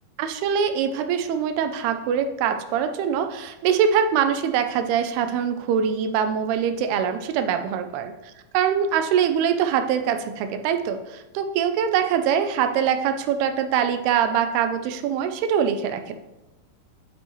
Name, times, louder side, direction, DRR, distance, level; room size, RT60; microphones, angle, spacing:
voice 1, 0.2-8.1 8.5-16.2, right 8 dB, 85° right, 8 dB, 2.6 m, -23 dB
8.9 x 5.3 x 3.1 m, 0.98 s
omnidirectional pair, 4.5 m